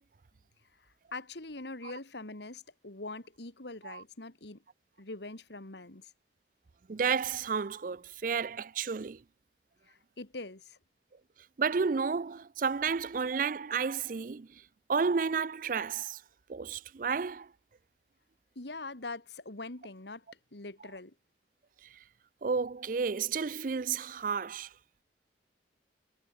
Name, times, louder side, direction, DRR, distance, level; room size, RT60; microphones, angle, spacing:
voice 1, 0.8-4.6 5.0-6.1 9.9-10.8 18.6-20.2 20.5-21.1, left 2 dB, 70° left, 2.2 m, -43 dB
voice 2, 6.9-9.2 11.6-14.5 14.9-16.2 16.5-17.5 22.4-24.7, right 5 dB, 45° right, 0.4 m, -31 dB
head